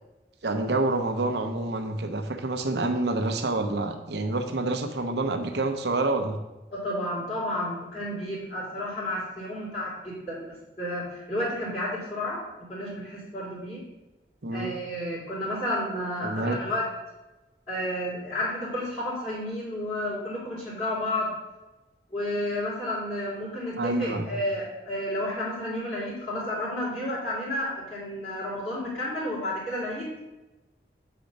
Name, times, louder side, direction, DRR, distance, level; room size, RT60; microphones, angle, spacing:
voice 1, 0.4-6.4 14.4-14.7 16.2-16.6 23.8-24.3, right 2 dB, 75° right, 6 dB, 0.8 m, -27 dB
voice 2, 6.7-13.8 14.5-16.9 17.7-21.3 22.1-30.3, left 1 dB, 30° left, -9 dB, 2.8 m, -31 dB
7.6 x 4.4 x 5.3 m, 1.0 s
head